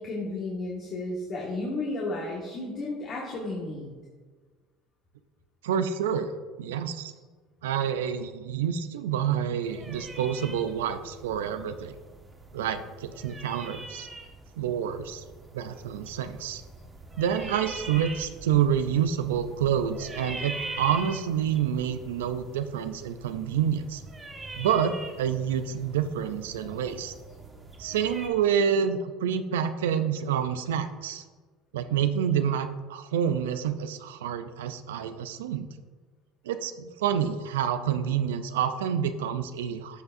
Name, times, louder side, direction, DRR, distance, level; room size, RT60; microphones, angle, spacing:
voice 1, 0.0-3.9, left 2 dB, 50° left, -4 dB, 1.6 m, -33 dB
voice 2, 5.6-6.3 6.6-7.1 7.6-12.0 12.5-14.1 14.6-15.2 15.5-16.6 17.2-24.0 24.5-24.9 25.2-27.1 27.8-31.2 31.7-35.7 36.4-40.0, right 8 dB, 85° right, 10 dB, 0.4 m, -28 dB
sound 1, 9.6-28.3, right 2 dB, 20° right, 1.5 m, -43 dB
12.5 x 5.6 x 2.6 m, 1.4 s
hypercardioid pair, 75°, 0 cm